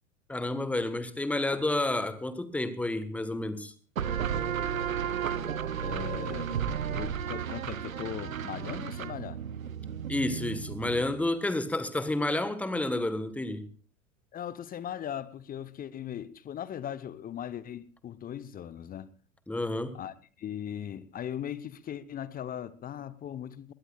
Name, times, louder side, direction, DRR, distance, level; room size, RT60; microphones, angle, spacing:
voice 1, 0.3-3.7 10.1-13.7 19.5-20.0, left 2 dB, 5° left, 1.3 m, -30 dB
sound 1, 4.0-11.3, right 8 dB, 75° right, 1.0 m, -33 dB
voice 2, 5.8-6.6 6.9-9.4 14.3-19.1 19.9-23.7, left 10 dB, 20° left, 0.9 m, -39 dB
22.0 x 19.0 x 2.4 m
figure-of-eight pair, 90°, 41 cm